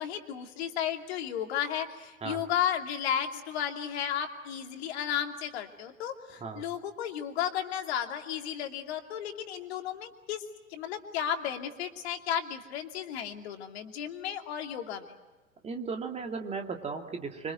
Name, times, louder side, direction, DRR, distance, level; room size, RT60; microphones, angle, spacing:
voice 1, 0.0-10.4 10.7-15.1, left 9 dB, 45° left, 5 dB, 2.7 m, -33 dB
voice 2, 15.6-17.5, right 5 dB, 15° right, 4 dB, 2.6 m, -36 dB
26.0 x 25.0 x 7.8 m, 1.2 s
figure-of-eight pair, 100°, 42 cm